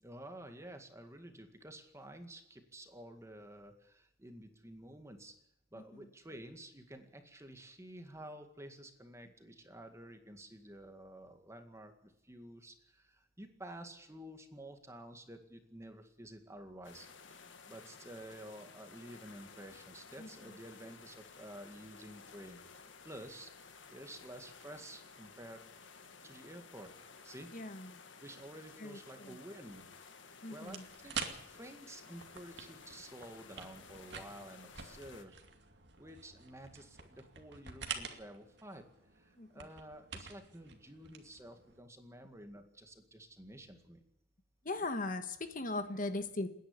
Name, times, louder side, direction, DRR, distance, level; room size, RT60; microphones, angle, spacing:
voice 1, 0.0-5.3 5.7-22.6 23.0-25.6 26.2-26.9 27.2-27.5 28.2-29.9 30.5-31.2 31.5-35.4 36.0-38.8 39.2-44.0, right 1 dB, 15° right, 6 dB, 2.0 m, -51 dB
sound 1, 16.8-35.3, left 5 dB, 80° left, 1.9 m, -55 dB
voice 2, 20.2-20.6 27.5-28.0 28.8-29.4 30.4-30.8 39.4-39.7 44.6-46.5, left 2 dB, 45° left, 9 dB, 1.3 m, -39 dB
sound 2, 30.7-41.8, right 6 dB, 60° right, 2.3 m, -48 dB
28.0 x 10.5 x 9.9 m, 0.82 s
head